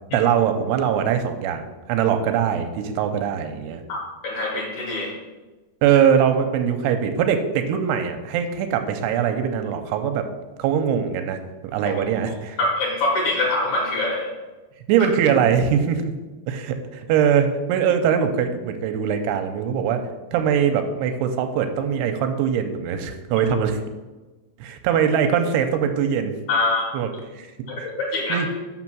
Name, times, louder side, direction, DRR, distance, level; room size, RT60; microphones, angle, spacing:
voice 1, 0.1-3.8 5.8-10.3 10.6-12.6 14.9-16.1 16.5-20.0 20.3-23.8 24.6-26.3 26.9-27.5 27.8-27.9 28.3-28.5, right 8 dB, 85° right, 7 dB, 2.7 m, -22 dB
voice 2, 3.9-5.1 12.6-14.3 26.5-26.8 27.7-28.4, left 2 dB, 65° left, -2 dB, 2.0 m, -24 dB
6.1 x 5.9 x 6.1 m, 1.2 s
omnidirectional pair, 4.8 m